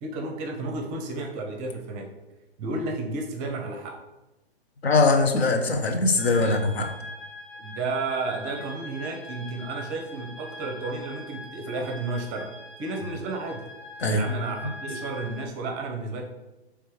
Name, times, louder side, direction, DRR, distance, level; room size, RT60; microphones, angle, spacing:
voice 1, 0.0-2.1 2.6-3.9 6.4-6.6 7.6-12.5 12.8-13.6 14.1-16.2, right 3 dB, 25° right, 2 dB, 0.6 m, -32 dB
voice 2, 4.8-6.9 14.0-14.3, left 3 dB, 75° left, 4 dB, 0.8 m, -21 dB
sound 1, 6.2-15.5, left 2 dB, 15° left, 0.4 m, -42 dB
3.4 x 3.3 x 4.7 m, 1.0 s
figure-of-eight pair, 115°, 32 cm